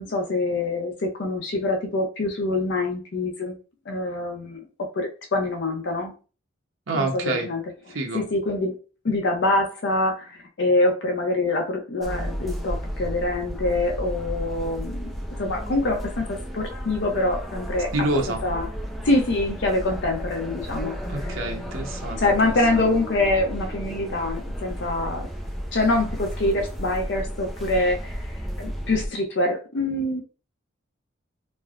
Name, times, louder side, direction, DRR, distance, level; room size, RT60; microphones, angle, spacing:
voice 1, 0.0-3.5 3.9-4.6 5.0-6.1 6.9-7.6 8.1-8.8 9.0-17.9 18.4-18.6 19.0-20.9 22.2-25.3 25.7-28.2 28.6-30.2, left 2 dB, 60° left, 0.5 m, -25 dB
voice 2, 6.9-7.5 7.9-8.3 17.9-18.4 21.1-22.9, right 2 dB, 75° right, 0.7 m, -28 dB
sound 1, 12.0-29.1, equal, ahead, 0.3 m, -33 dB
3.2 x 2.0 x 2.3 m
head